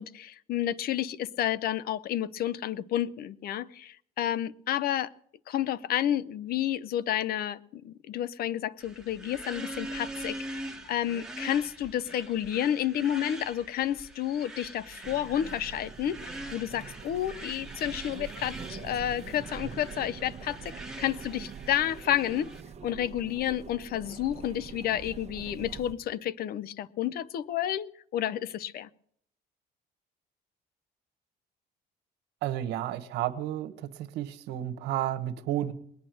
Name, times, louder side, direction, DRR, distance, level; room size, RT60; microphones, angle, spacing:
voice 1, 0.0-5.1 5.5-22.5 22.8-27.9 28.1-28.9, left 11 dB, 65° left, 19 dB, 0.7 m, -30 dB
sound 1, 8.8-22.6, right 1 dB, 5° right, 1.6 m, -43 dB
sound 2, 15.0-25.9, right 7 dB, 40° right, 1.1 m, -44 dB
voice 2, 32.4-33.7 34.1-35.7, right 12 dB, 85° right, 12 dB, 1.2 m, -31 dB
20.5 x 8.7 x 7.7 m, 0.66 s
cardioid pair, 110°, 17 cm